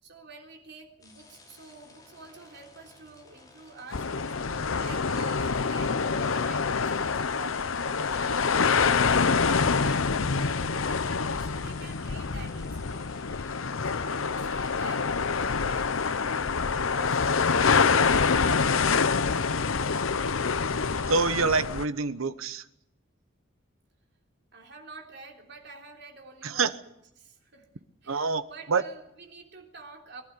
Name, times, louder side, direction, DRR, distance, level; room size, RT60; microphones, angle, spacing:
voice 1, 0.0-9.2 9.7-13.1 13.8-17.8 18.2-19.7 24.5-26.8 27.2-27.7 28.0-30.2, right 3 dB, 55° right, 2 dB, 3.5 m, -48 dB
sound 1, 1.0-13.6, left 3 dB, 20° left, 5.4 m, -55 dB
sound 2, 3.9-21.8, left 5 dB, 75° left, 0.8 m, -26 dB
voice 2, 21.1-22.6 26.4-26.7 28.1-28.8, right 4 dB, 85° right, 13 dB, 1.0 m, -26 dB
22.5 x 12.0 x 9.7 m, 0.82 s
head